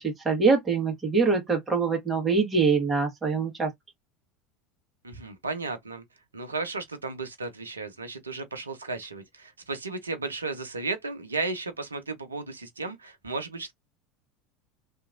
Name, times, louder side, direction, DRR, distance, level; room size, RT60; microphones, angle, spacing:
voice 1, 0.0-3.7, right 4 dB, 20° right, 1.3 m, -24 dB
voice 2, 5.0-6.0 6.3-13.7, right 3 dB, 85° right, 0.6 m, -34 dB
2.8 x 2.5 x 2.5 m
figure-of-eight pair, 75°, 0 cm